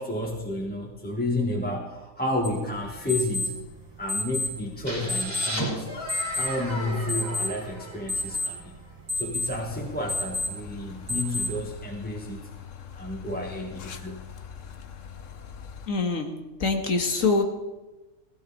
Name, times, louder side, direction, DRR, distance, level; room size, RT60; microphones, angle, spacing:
voice 1, 0.0-3.6 4.0-5.9 6.3-8.7 9.2-12.4 13.0-14.2, left 1 dB, 5° left, 0 dB, 1.5 m, -31 dB
sound 1, 2.4-11.8, left 2 dB, 70° right, 3.2 m, -33 dB
sound 2, 4.9-8.6, equal, 30° left, 3.7 m, -35 dB
sound 3, 9.5-15.9, left 7 dB, 75° left, 1.3 m, -43 dB
voice 2, 15.9-16.3 16.6-17.4, left 4 dB, 90° left, 4 dB, 2.1 m, -24 dB
17.5 x 15.5 x 4.2 m, 1.1 s
omnidirectional pair, 1.3 m